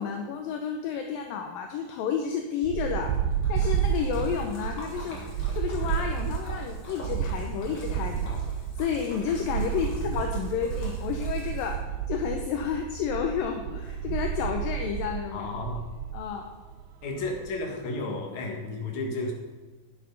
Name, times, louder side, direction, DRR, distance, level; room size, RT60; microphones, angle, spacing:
voice 1, 0.0-3.2 3.5-5.2 5.5-8.4 8.8-11.8 12.1-15.5 16.1-16.5, left 7 dB, 75° left, 3 dB, 2.4 m, -31 dB
sound 1, 2.6-17.8, right 8 dB, 90° right, 3.0 m, -31 dB
Splash splatter, 2.9-12.0, left 1 dB, 35° left, 2.3 m, -46 dB
voice 2, 15.3-15.9 17.0-19.3, left 2 dB, 55° left, 2 dB, 2.7 m, -33 dB
10.5 x 8.9 x 5.3 m, 1.3 s
omnidirectional pair, 4.4 m